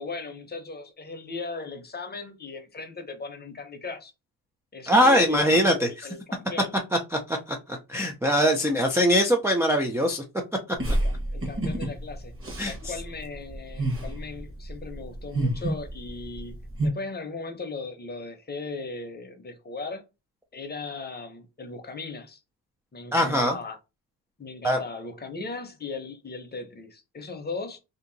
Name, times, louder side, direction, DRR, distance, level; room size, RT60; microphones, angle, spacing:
voice 1, 0.0-4.1 4.7-6.7 10.9-12.3 12.6-20.0 20.5-22.4 22.9-23.8 24.4-27.8, left 3 dB, 25° left, 0.7 m, -37 dB
voice 2, 4.9-6.1 7.1-10.2 12.6-12.9 23.1-23.6 24.6-24.8, equal, 5° right, 0.3 m, -22 dB
sound 1, 10.8-16.9, right 1 dB, 30° right, 1.2 m, -29 dB
2.8 x 2.5 x 3.8 m
cardioid pair, 130°, 41 cm